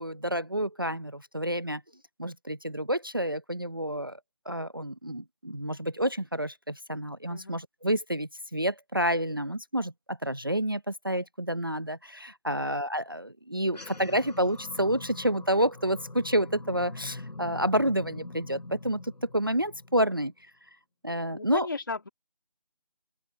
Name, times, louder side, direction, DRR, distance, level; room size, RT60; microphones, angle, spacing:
voice 1, 0.0-1.8 2.2-4.2 4.5-20.3 21.0-21.7, right 1 dB, 35° right, 0.6 m, -29 dB
sound 1, 13.6-20.3, left 2 dB, 80° left, 6.9 m, -43 dB
voice 2, 21.3-22.1, left 3 dB, 30° left, 2.6 m, -35 dB
open air
figure-of-eight pair, 180°, 21 cm